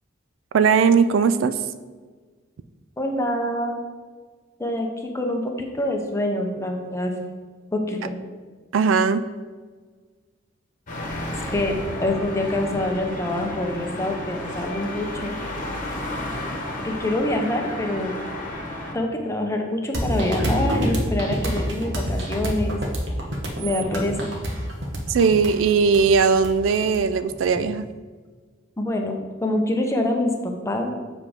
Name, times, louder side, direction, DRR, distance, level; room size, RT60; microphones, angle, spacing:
voice 1, 0.5-1.6 8.7-9.2 25.1-27.9, right 5 dB, 85° right, 12 dB, 0.4 m, -19 dB
voice 2, 3.0-3.8 4.6-7.1 7.7-8.1 11.5-15.4 16.8-18.1 18.9-22.8 23.6-24.2 28.8-30.9, left 1 dB, 15° left, 2 dB, 0.7 m, -25 dB
sound 1, 10.9-18.9, left 1 dB, 45° left, 1.2 m, -32 dB
sound 2, 19.9-27.5, equal, 65° right, 1.1 m, -27 dB
7.4 x 3.5 x 5.1 m, 1.5 s
head